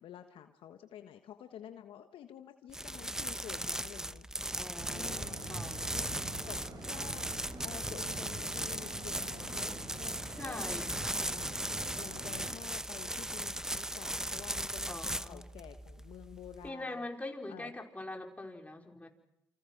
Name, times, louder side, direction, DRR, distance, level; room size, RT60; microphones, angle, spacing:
voice 1, 0.0-4.3 4.9-5.6 5.9-7.3 7.6-11.7 12.0-17.1 17.5-17.7, left 10 dB, 65° left, 8 dB, 1.4 m, -50 dB
sound 1, 2.7-16.7, right 1 dB, 5° right, 1.0 m, -38 dB
voice 2, 4.6-5.8 10.4-11.0 14.9-15.4 16.6-19.1, left 2 dB, 15° left, 2 dB, 4.9 m, -43 dB
sound 2, 4.8-12.5, right 2 dB, 45° right, 7.2 m, -45 dB
28.5 x 26.0 x 6.0 m, 0.81 s
hypercardioid pair, 55°, 9 cm